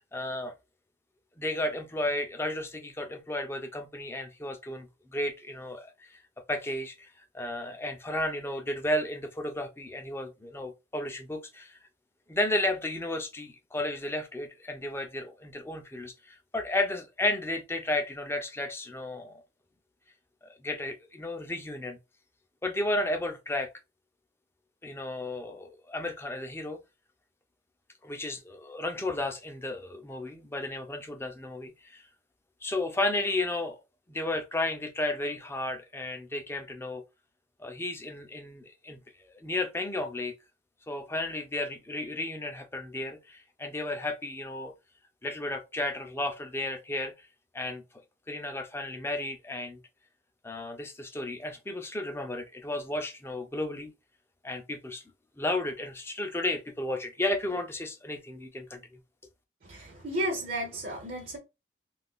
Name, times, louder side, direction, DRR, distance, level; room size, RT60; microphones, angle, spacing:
voice 1, 0.1-0.5 1.4-6.2 6.5-7.1 7.3-11.8 12.3-19.4 20.4-22.0 22.6-23.7 24.8-26.8 28.0-32.0 32.6-33.8 34.1-37.0 37.6-40.3 40.9-44.7 45.2-47.3 47.5-47.8 48.3-49.8 50.4-53.9 54.4-55.0 55.4-58.8, left 1 dB, 10° left, 0.4 m, -33 dB
voice 2, 59.6-61.4, right 1 dB, 50° right, 0.6 m, -33 dB
2.4 x 2.3 x 3.6 m
head